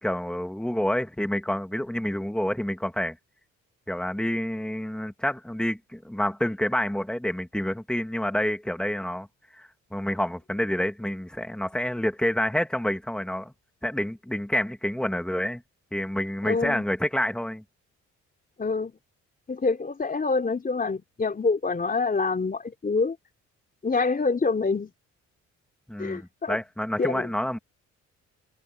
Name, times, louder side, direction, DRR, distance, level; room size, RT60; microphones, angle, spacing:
voice 1, 0.0-3.2 3.9-9.3 9.5-13.5 13.8-15.6 15.9-17.6 25.9-27.6, left 1 dB, 5° left, 2.3 m, -28 dB
voice 2, 16.4-16.8 18.6-18.9 19.5-23.2 23.8-24.9 26.0-26.6 27.0-27.3, left 4 dB, 30° left, 3.6 m, -26 dB
cardioid pair, 90°, 30 cm